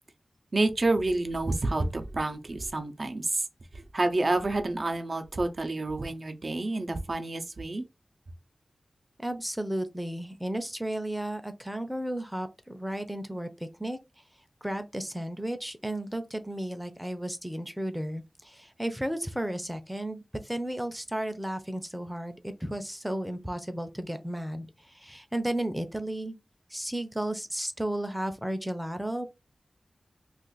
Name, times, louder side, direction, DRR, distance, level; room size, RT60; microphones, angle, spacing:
voice 1, 0.5-3.5 3.7-7.9, right 2 dB, 55° right, 0.6 m, -29 dB
voice 2, 9.2-14.0 14.6-24.7 25.0-26.3 26.7-29.3, right 1 dB, 5° right, 0.6 m, -33 dB
2.5 x 2.5 x 3.9 m
wide cardioid pair, 60°, 0 cm